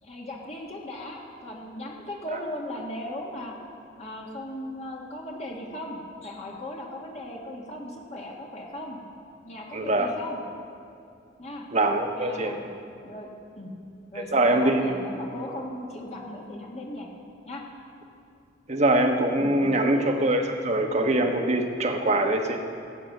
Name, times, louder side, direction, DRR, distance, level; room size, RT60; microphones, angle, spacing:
voice 1, 0.0-3.5 4.0-9.0 9.4-10.4 11.4-11.7 12.1-12.7 13.0-13.3 13.6-13.7 14.1-17.1 17.4-17.6 19.4-20.0, left 1 dB, 35° left, -2 dB, 1.6 m, -37 dB
voice 2, 9.7-10.1 11.7-12.5 14.1-14.9 18.7-22.6, right 1 dB, 35° right, 4 dB, 1.1 m, -23 dB
16.0 x 8.7 x 6.5 m, 2.5 s
head